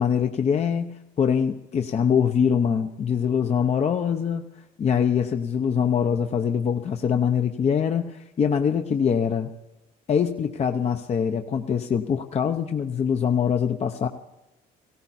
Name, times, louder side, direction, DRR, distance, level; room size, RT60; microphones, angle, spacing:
voice 1, 0.0-4.4 4.8-9.5 10.1-14.1, left 7 dB, 40° left, 5 dB, 0.8 m, -23 dB
18.0 x 16.5 x 4.3 m, 0.97 s
cardioid pair, 110°, 17 cm